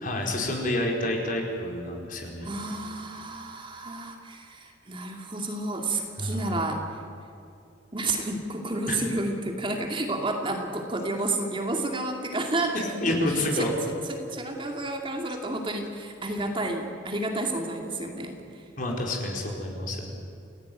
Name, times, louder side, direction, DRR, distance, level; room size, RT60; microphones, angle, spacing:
voice 1, 0.0-2.5 6.2-6.6 8.9-9.0 13.0-13.7 18.8-20.2, left 1 dB, 45° left, 0 dB, 4.7 m, -29 dB
voice 2, 2.4-6.8 7.9-12.8 13.5-18.6, right 2 dB, 25° right, 3 dB, 2.4 m, -31 dB
28.5 x 17.0 x 9.3 m, 2.7 s
head